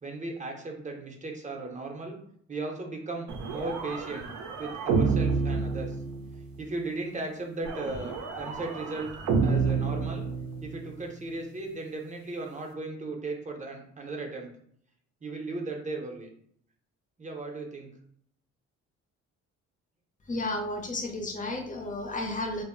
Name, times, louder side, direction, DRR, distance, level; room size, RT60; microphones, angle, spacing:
voice 1, 0.0-2.2 2.5-4.3 4.6-6.0 6.6-9.1 9.4-10.3 10.6-14.5 15.2-16.3 17.2-17.9, right 3 dB, 25° right, 1 dB, 0.6 m, -36 dB
sound 1, 3.3-6.5 7.6-10.9, right 5 dB, 75° right, 0.5 m, -29 dB
voice 2, 20.3-22.6, left 2 dB, 25° left, 3 dB, 0.6 m, -32 dB
2.0 x 2.0 x 3.6 m, 0.66 s
cardioid pair, 90°, 30 cm